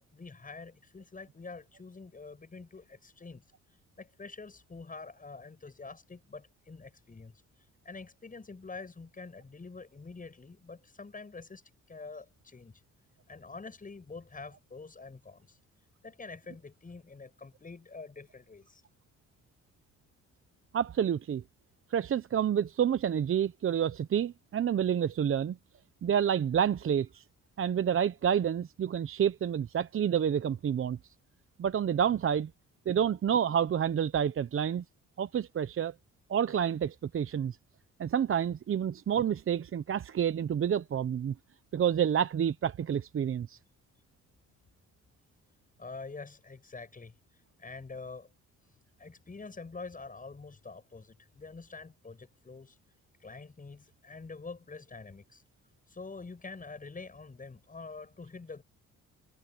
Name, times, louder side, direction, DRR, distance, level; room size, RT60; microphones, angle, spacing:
voice 1, 0.0-3.4 4.0-7.4 7.8-11.6 11.9-12.8 13.3-15.6 16.0-18.8 45.8-47.1 47.6-48.3 49.0-52.8 53.2-55.4 55.9-58.6, left 4 dB, 25° left, 7.6 m, -46 dB
voice 2, 20.7-21.4 21.9-25.6 26.0-27.2 27.6-31.0 31.6-32.5 32.9-34.8 35.2-35.9 36.3-37.6 38.0-41.3 41.7-43.6, right 8 dB, 45° right, 0.9 m, -29 dB
cardioid pair, 90°, 30 cm